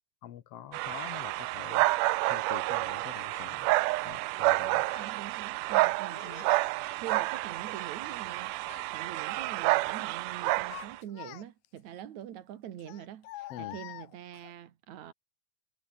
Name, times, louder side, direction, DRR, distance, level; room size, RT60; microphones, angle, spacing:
voice 1, 0.2-3.7 4.0-4.9 13.5-13.8, left 11 dB, 60° left, 1.9 m, -46 dB
sound 1, 0.7-11.0, right 20 dB, 85° right, 2.2 m, -29 dB
Child speech kid speaking, 3.3-3.5 4.4-5.1 6.1-6.7 7.1-8.3 8.6-8.9 9.3-9.9 10.4-11.8 12.8-14.5, left 16 dB, 90° left, 2.6 m, -48 dB
voice 2, 5.0-6.5 7.0-8.5 8.9-15.1, right 11 dB, 65° right, 2.9 m, -44 dB
omnidirectional pair, 3.7 m